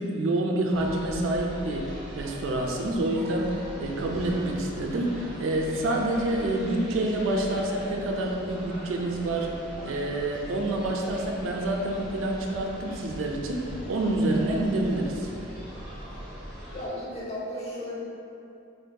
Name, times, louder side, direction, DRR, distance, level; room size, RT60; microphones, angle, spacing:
voice 1, 0.0-1.9 2.1-9.5 9.8-15.3, right 1 dB, 70° right, 0 dB, 0.4 m, -27 dB
sound 1, 0.7-16.9, equal, ahead, 0.7 m, -41 dB
voice 2, 16.7-17.9, equal, 30° left, -7 dB, 0.7 m, -35 dB
4.5 x 2.6 x 2.2 m, 2.7 s
head